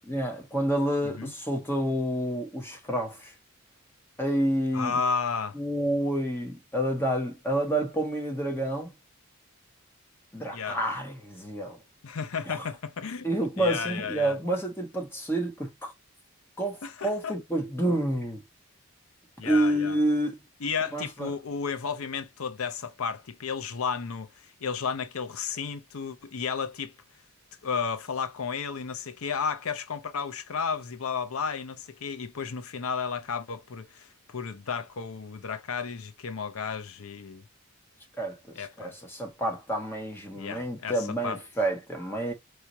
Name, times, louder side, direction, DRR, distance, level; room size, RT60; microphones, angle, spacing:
voice 1, 0.1-3.3 4.2-4.9 5.5-8.9 10.3-11.8 12.5-12.6 13.2-15.9 16.6-18.4 19.4-20.4 20.9-21.3 38.2-42.3, right 1 dB, 10° left, 1.4 m, -29 dB
voice 2, 4.7-5.6 10.5-10.8 12.0-13.3 13.6-14.4 16.8-17.4 19.4-20.0 20.6-24.3 24.6-26.9 27.6-37.4 38.6-38.9 40.3-41.4, left 6 dB, 75° left, 0.6 m, -33 dB
4.7 x 3.2 x 2.7 m
head